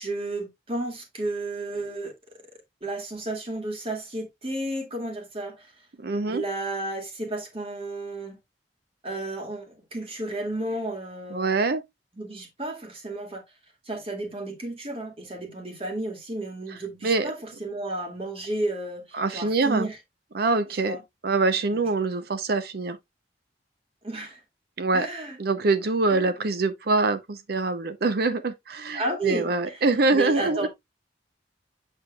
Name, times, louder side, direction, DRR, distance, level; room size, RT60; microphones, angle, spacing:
voice 1, 0.0-2.4 2.8-5.7 6.3-8.4 9.0-11.6 12.1-13.4 13.9-20.0 20.8-21.0 21.7-21.8 24.0-24.4 24.9-25.4 26.1-26.3 28.9-29.8 30.1-30.7, right 2 dB, 35° right, 2.2 m, -32 dB
voice 2, 6.0-6.4 11.3-11.8 17.0-17.3 19.1-19.9 20.3-21.0 21.2-23.0 24.8-25.1 25.4-30.7, right 3 dB, 60° right, 0.6 m, -24 dB
7.6 x 6.4 x 2.2 m
head